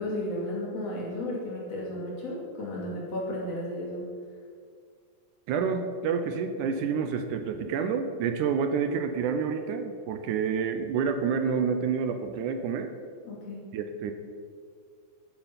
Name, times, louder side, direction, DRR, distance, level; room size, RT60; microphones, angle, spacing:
voice 1, 0.0-4.0 13.2-13.7, left 1 dB, 50° left, -4 dB, 3.4 m, -33 dB
voice 2, 5.5-12.9 13.7-14.1, right 6 dB, 75° right, 7 dB, 2.1 m, -28 dB
12.5 x 7.2 x 5.8 m, 2.1 s
omnidirectional pair, 3.7 m